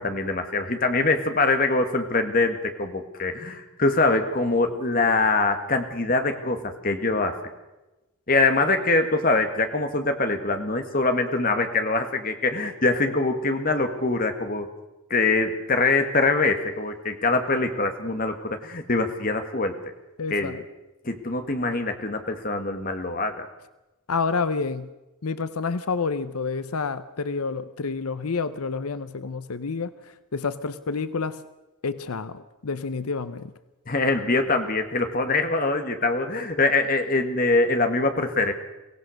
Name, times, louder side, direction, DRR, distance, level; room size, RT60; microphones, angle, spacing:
voice 1, 0.0-7.4 8.3-14.7 15.1-19.8 20.3-20.6 21.0-23.5 33.9-38.5, left 3 dB, 40° left, 7 dB, 1.9 m, -23 dB
voice 2, 20.2-20.6 24.1-24.9 25.2-29.9 30.3-31.4 31.8-33.5, left 4 dB, 90° left, 14 dB, 0.8 m, -28 dB
23.5 x 17.5 x 6.5 m, 1.0 s
head